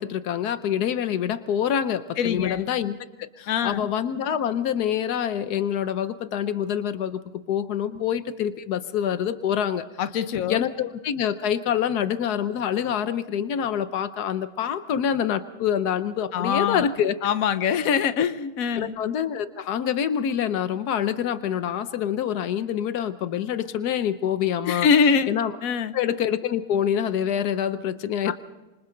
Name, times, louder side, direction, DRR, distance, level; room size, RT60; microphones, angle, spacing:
voice 1, 0.0-7.2 7.5-9.8 10.5-17.1 18.7-24.9 25.3-25.5 25.9-28.3, left 9 dB, 85° left, 11 dB, 1.4 m, -26 dB
voice 2, 2.2-2.6 3.5-3.9 7.9-8.0 10.0-10.6 16.3-16.9 17.2-19.0 24.7-25.4 25.6-25.9 28.2-28.3, left 6 dB, 65° left, 11 dB, 1.3 m, -23 dB
26.5 x 25.5 x 3.9 m, 1.1 s
omnidirectional pair, 1.6 m